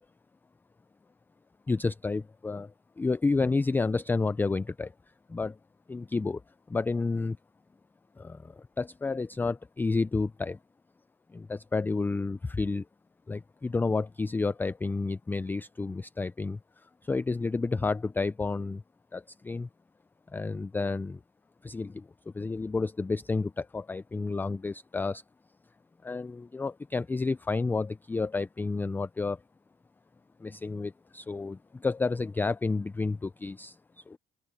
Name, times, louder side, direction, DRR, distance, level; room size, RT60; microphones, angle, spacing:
voice 1, 1.7-4.9 5.3-5.6 5.9-6.4 6.7-7.4 8.2-10.6 11.3-12.8 13.3-16.6 17.0-18.8 19.1-19.7 20.3-21.2 21.6-25.2 26.0-29.4 30.4-34.2, left 3 dB, 10° left, 0.3 m, -30 dB
open air
cardioid pair, 110°, 17 cm